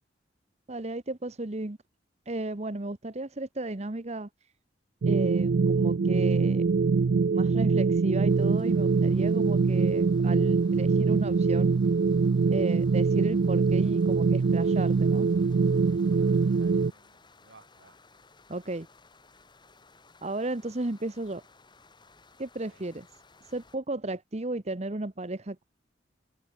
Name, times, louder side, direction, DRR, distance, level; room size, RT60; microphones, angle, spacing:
voice 1, 0.7-1.8 2.3-4.3 5.1-6.6 7.3-11.7 12.5-15.3 18.5-18.9 20.2-21.4 22.4-23.1 23.5-25.7, right 2 dB, 35° right, 1.1 m, -34 dB
sound 1, 5.0-16.9, right 4 dB, 60° right, 0.4 m, -23 dB
sound 2, 8.3-23.8, left 3 dB, 25° left, 3.3 m, -59 dB
voice 2, 16.1-18.0 22.7-22.9, right 3 dB, 85° right, 4.1 m, -57 dB
head